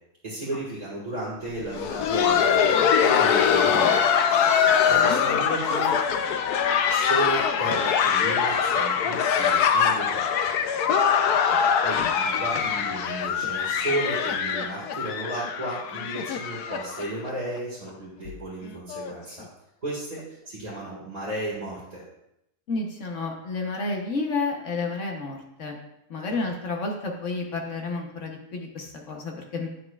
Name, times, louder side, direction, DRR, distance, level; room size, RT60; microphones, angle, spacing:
voice 1, 0.2-4.0 4.4-6.0 6.9-10.6 11.4-19.4 19.8-22.0 26.3-26.5, right 1 dB, 25° right, -8 dB, 1.7 m, -34 dB
Laughter, 1.6-17.3 17.6-17.7 18.3-18.4 18.9-19.1 20.2-20.3, left 7 dB, 85° left, 1.2 m, -23 dB
voice 2, 4.9-5.2 11.5-11.6 22.7-25.8 26.1-29.7, left 3 dB, 55° left, 2 dB, 1.2 m, -31 dB
9.6 x 7.7 x 2.3 m, 0.82 s
omnidirectional pair, 1.6 m